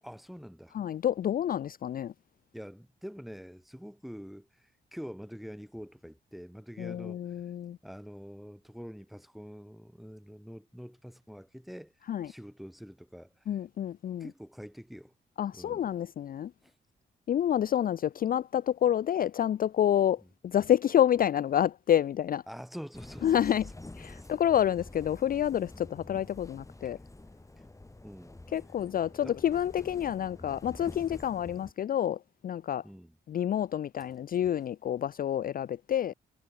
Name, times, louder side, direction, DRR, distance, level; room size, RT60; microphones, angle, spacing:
voice 1, 0.0-0.8 2.5-7.4 7.8-11.9 12.2-13.6 14.2-15.1 15.5-15.9 16.6-16.7 20.2-20.3 22.5-23.4 23.6-23.7 24.1-24.3 26.8-26.9 27.6-27.7 28.0-28.4 29.2-29.4 32.8-33.2, equal, ahead, 3.0 m, -46 dB
voice 2, 0.7-2.1 6.8-7.8 12.1-12.3 13.5-14.3 15.4-16.5 17.3-22.4 23.2-23.6 24.0-27.0 28.5-32.8 33.3-36.1, left 10 dB, 45° left, 0.4 m, -28 dB
sound 1, 22.9-31.7, left 2 dB, 15° left, 2.6 m, -48 dB
cardioid pair, 75°, 20 cm